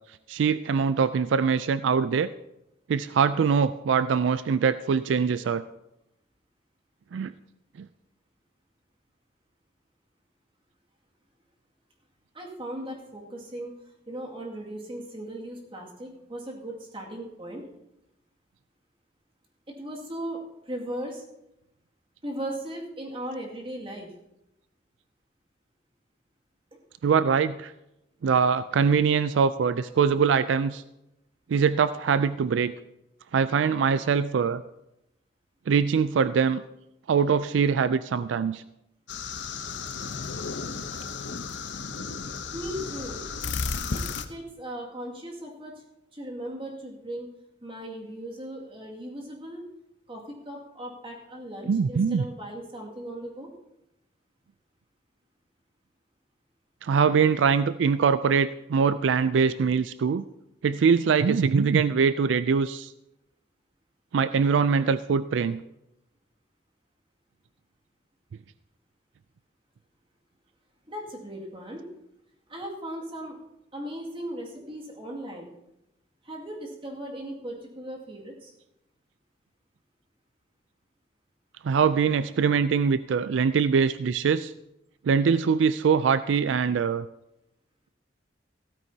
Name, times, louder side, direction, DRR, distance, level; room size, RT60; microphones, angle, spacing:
voice 1, 0.3-2.3 2.9-5.6 7.1-7.3 7.8-7.9 27.0-27.7 28.2-30.8 31.5-32.7 33.3-34.6 35.7-36.6 37.1-38.6 51.7-52.2 56.8-60.2 60.6-62.9 64.1-65.6 81.6-84.5 85.0-87.1, right 6 dB, 80° right, 14 dB, 0.4 m, -23 dB
voice 2, 12.3-13.8 14.1-17.7 19.7-21.2 22.2-24.1 42.5-43.2 43.9-44.0 44.3-45.7 46.1-47.3 47.6-49.6 50.1-53.5 70.9-71.9 72.5-73.4 73.7-75.5 76.2-78.5, right 1 dB, 30° right, -1 dB, 2.2 m, -37 dB
sound 1, 39.1-44.2, left 5 dB, 70° left, 0.8 m, -33 dB
15.5 x 13.5 x 2.8 m, 0.87 s
head